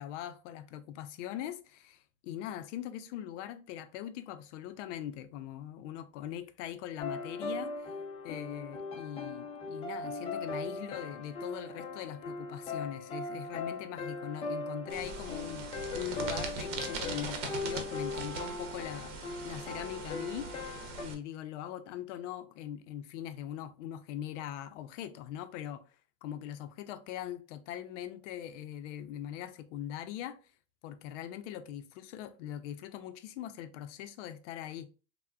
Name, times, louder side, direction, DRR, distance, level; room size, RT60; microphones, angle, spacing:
voice 1, 0.0-7.9 8.2-15.6 15.9-20.5 21.0-25.8 26.2-30.4 30.8-34.9, left 11 dB, 80° left, 0.5 m, -41 dB
sound 1, 7.0-21.0, left 3 dB, 15° left, 0.4 m, -39 dB
sound 2, 14.9-21.1, right 4 dB, 80° right, 0.7 m, -41 dB
3.4 x 2.1 x 2.2 m
supercardioid pair, 130°, 36 cm